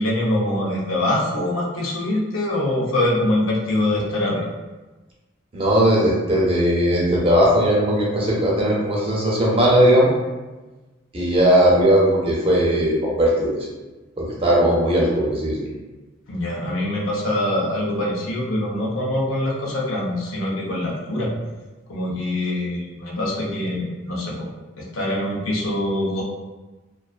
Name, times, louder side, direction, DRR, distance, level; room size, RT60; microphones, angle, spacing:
voice 1, 0.0-4.4 16.3-21.3 21.9-24.5 24.8-26.2, left 1 dB, 85° left, -3 dB, 0.6 m, -24 dB
voice 2, 5.5-10.1 11.1-13.6 14.2-15.7, equal, 25° right, -4 dB, 0.5 m, -18 dB
2.4 x 2.2 x 2.3 m, 1.2 s
head